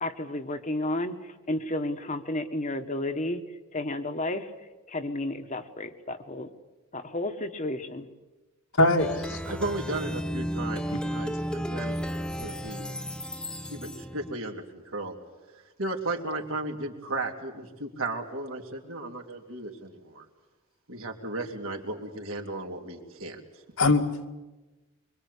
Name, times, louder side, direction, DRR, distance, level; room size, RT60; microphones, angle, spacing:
voice 1, 0.0-3.4 3.7-4.5 4.9-6.5 6.9-8.1, left 1 dB, 35° left, 7 dB, 1.5 m, -32 dB
voice 2, 8.8-9.4 10.9-11.0 23.8-24.3, left 2 dB, 75° left, 2 dB, 2.5 m, -22 dB
Plucked string instrument, 9.0-14.3, equal, 5° left, 0.8 m, -33 dB
voice 3, 9.5-12.0 12.4-12.9 13.7-14.6 14.9-15.2 15.8-20.3 20.9-23.4, right 2 dB, 70° right, 2 dB, 3.3 m, -35 dB
25.5 x 24.0 x 8.5 m, 1.1 s
head